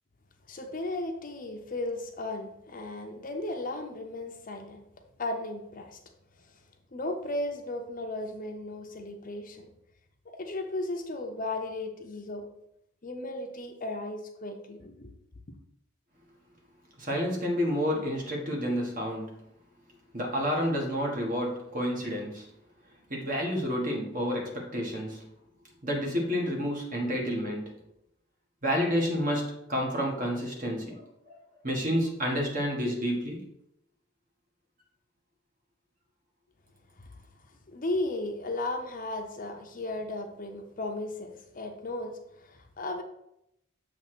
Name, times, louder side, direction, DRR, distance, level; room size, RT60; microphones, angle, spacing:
voice 1, 0.5-4.8 5.2-6.0 6.9-9.7 10.3-12.5 13.0-15.1 37.0-37.1 37.7-43.0, left 2 dB, 40° left, 4 dB, 0.7 m, -35 dB
voice 2, 17.0-19.4 20.1-22.5 23.1-25.2 25.8-27.8 28.6-31.4 31.6-33.5, equal, 40° right, 0 dB, 1.6 m, -30 dB
6.9 x 3.3 x 6.0 m, 0.80 s
head